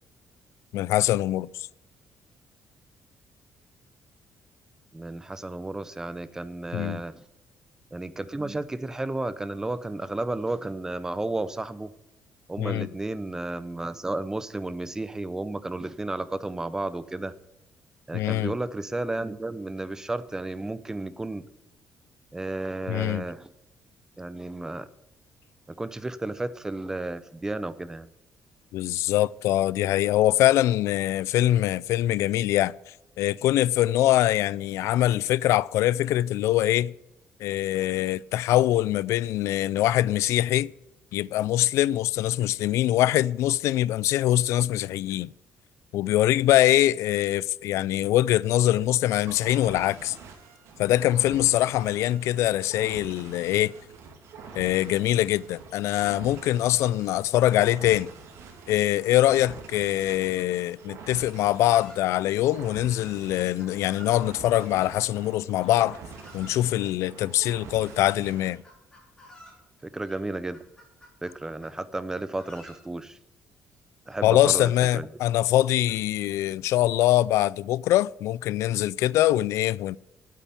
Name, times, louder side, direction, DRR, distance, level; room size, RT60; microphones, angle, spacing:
voice 1, 0.7-1.5 6.7-7.0 12.6-12.9 18.1-18.5 22.9-23.2 28.7-32.7 33.2-36.9 37.4-40.7 41.1-45.3 45.9-50.2 50.8-53.7 54.5-58.1 58.7-66.0 66.3-68.6 74.2-80.0, left 14 dB, 85° left, 0.3 m, -23 dB
voice 2, 4.9-7.2 7.9-11.9 12.5-17.3 18.1-21.5 22.3-23.5 24.2-24.9 25.7-28.1 69.8-70.6 71.2-73.2 74.1-75.1, right 2 dB, 10° right, 0.6 m, -32 dB
sound 1, 49.2-68.6, right 5 dB, 80° right, 2.7 m, -45 dB
Chicken rooster, 59.5-60.5 61.2-62.3 63.6-64.3 65.6-66.7 67.6-68.0 68.4-69.6 70.0-70.2 70.5-71.8 72.1-72.8 73.8-73.9 74.1-74.2 74.8-74.9 75.4-76.0, equal, 15° left, 3.6 m, -52 dB
9.1 x 8.4 x 9.3 m
cardioid pair, 145°, 5 cm